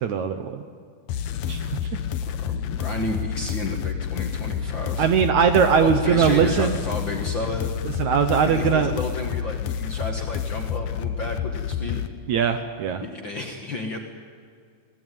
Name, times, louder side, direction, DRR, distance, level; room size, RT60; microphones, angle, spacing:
voice 1, 0.0-0.6 1.5-1.6 5.0-6.8 8.0-8.9 12.3-13.0, right 7 dB, 70° right, 8 dB, 2.0 m, -20 dB
sound 1, 1.1-12.1, left 8 dB, 75° left, 1.6 m, -29 dB
voice 2, 1.8-5.1 5.8-7.9 8.4-12.0 13.0-14.0, left 2 dB, 45° left, 2 dB, 1.6 m, -32 dB
23.0 x 18.0 x 9.3 m, 2.2 s
omnidirectional pair, 4.2 m